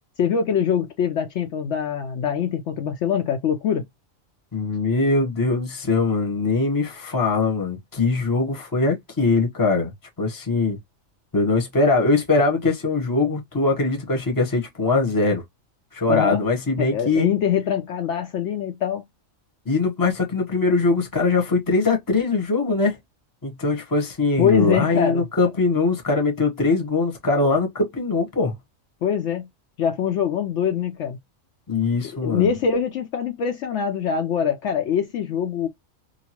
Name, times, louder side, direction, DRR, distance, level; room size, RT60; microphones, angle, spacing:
voice 1, 0.2-3.8 16.1-16.4 16.8-19.0 24.4-25.2 29.0-29.5 29.8-31.2 32.2-35.7, left 7 dB, 70° left, 0.8 m, -23 dB
voice 2, 4.5-9.9 10.2-10.8 11.3-15.4 15.9-17.3 19.6-23.0 23.4-28.5 31.7-32.5, left 3 dB, 20° left, 0.8 m, -21 dB
2.8 x 2.4 x 2.8 m
omnidirectional pair, 1.4 m